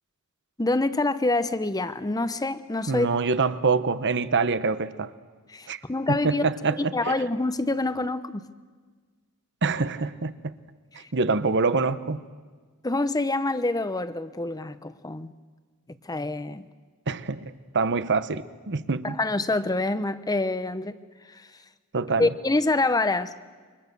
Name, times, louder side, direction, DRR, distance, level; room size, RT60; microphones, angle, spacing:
voice 1, 0.6-3.1 5.5-6.4 6.8-8.4 12.8-15.3 16.1-16.7 19.0-21.0 22.2-23.3, left 2 dB, 15° left, 12 dB, 0.9 m, -26 dB
voice 2, 2.9-5.1 5.7-5.8 6.1-7.2 9.6-10.5 10.9-12.3 17.1-19.2 21.9-22.3, right 4 dB, 55° right, 13 dB, 1.0 m, -25 dB
28.5 x 25.0 x 6.9 m, 1.5 s
head